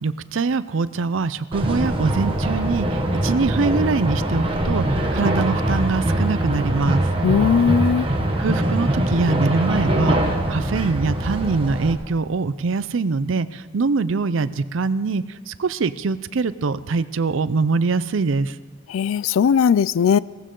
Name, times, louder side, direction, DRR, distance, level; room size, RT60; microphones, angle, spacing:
voice 1, 0.0-7.1 8.4-18.6, right 4 dB, 70° right, 0.5 m, -23 dB
sound 1, 1.5-11.9, right 1 dB, 25° right, 1.4 m, -22 dB
voice 2, 7.2-8.1 18.9-20.2, left 7 dB, 75° left, 0.3 m, -18 dB
17.5 x 15.0 x 3.8 m
head